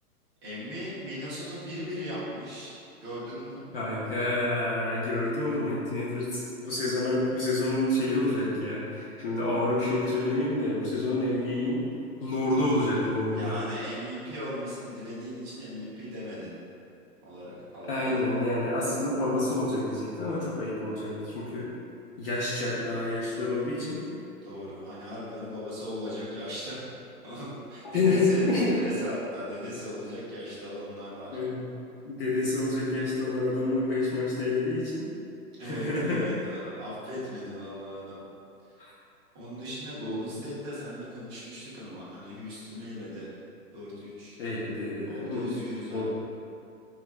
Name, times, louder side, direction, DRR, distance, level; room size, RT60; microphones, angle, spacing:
voice 1, 0.4-2.7 3.0-3.6 13.3-16.6 17.2-18.3 24.4-26.9 27.2-31.4 35.6-38.2 39.3-43.3 43.7-44.4 45.1-46.1, equal, 20° right, -9 dB, 0.5 m, -37 dB
voice 2, 3.7-11.9 12.2-13.5 17.9-21.7 22.2-24.0 27.9-28.7 31.3-31.7 32.0-35.1 35.6-36.2 38.8-38.9 40.1-40.2 44.4-45.5 45.9-46.1, left 2 dB, 40° left, -7 dB, 0.5 m, -28 dB
3.3 x 2.4 x 3.0 m, 2.6 s
hypercardioid pair, 140°, 46 cm